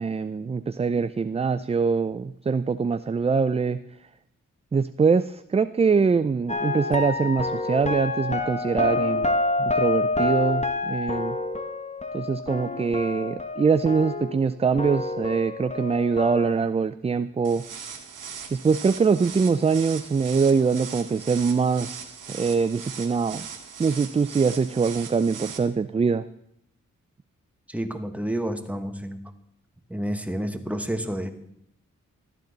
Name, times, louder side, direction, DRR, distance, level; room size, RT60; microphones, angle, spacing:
voice 1, 0.0-3.8 4.7-9.3 9.6-11.4 12.1-17.6 18.5-23.5 23.8-26.2, right 5 dB, 20° right, 13 dB, 0.3 m, -23 dB
sound 1, 6.5-14.5 14.8-16.5, left 2 dB, 20° left, 1.2 m, -28 dB
sound 2, 17.4-25.6, right 6 dB, 75° right, 1.3 m, -39 dB
voice 2, 27.7-29.2 29.9-31.3, right 1 dB, 5° right, 7 dB, 1.2 m, -29 dB
13.0 x 9.2 x 4.0 m, 0.76 s
supercardioid pair, 40°, 32 cm